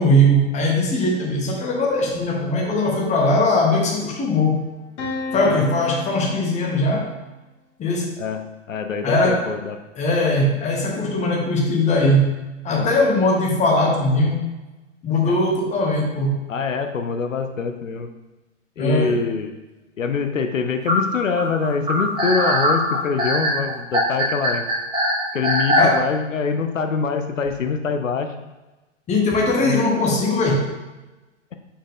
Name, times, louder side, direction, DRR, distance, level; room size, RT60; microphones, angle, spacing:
voice 1, 0.0-4.7 5.3-7.1 7.8-8.2 9.0-9.5 10.0-12.4 12.6-14.4 15.0-16.5 18.8-19.2 25.8-26.1 29.1-30.7, left 1 dB, 20° left, 0 dB, 1.2 m, -20 dB
sound 1, 2.6-4.3 5.0-6.9, left 2 dB, 60° left, 1.8 m, -34 dB
voice 2, 5.3-5.6 8.2-9.8 12.7-12.9 15.3-15.4 16.5-18.1 18.8-19.5 20.0-24.7 25.3-28.3 29.6-29.8, left 5 dB, 85° left, 7 dB, 0.7 m, -24 dB
sound 2, 20.9-26.0, equal, 10° right, 1.6 m, -21 dB
5.1 x 4.9 x 3.7 m, 1.1 s
hypercardioid pair, 115°, 38 cm